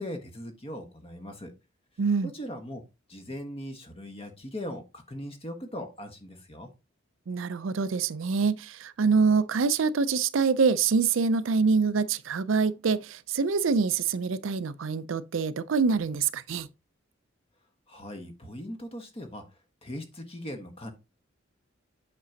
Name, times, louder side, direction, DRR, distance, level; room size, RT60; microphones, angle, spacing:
voice 1, 0.0-1.5 2.2-2.8 3.1-6.7 17.9-19.4 19.8-20.9, left 1 dB, 30° left, 1.4 m, -39 dB
voice 2, 2.0-2.3 7.3-16.7, right 5 dB, 70° right, 0.5 m, -25 dB
8.5 x 6.0 x 2.8 m
head